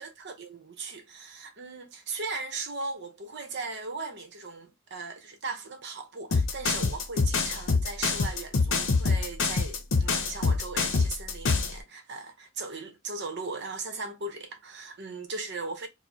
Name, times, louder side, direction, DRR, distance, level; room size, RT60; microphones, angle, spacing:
voice 1, 0.0-15.9, right 3 dB, 60° right, 0.8 m, -38 dB
sound 1, 6.3-11.8, left 4 dB, 65° left, 0.7 m, -25 dB
4.6 x 2.1 x 2.7 m
head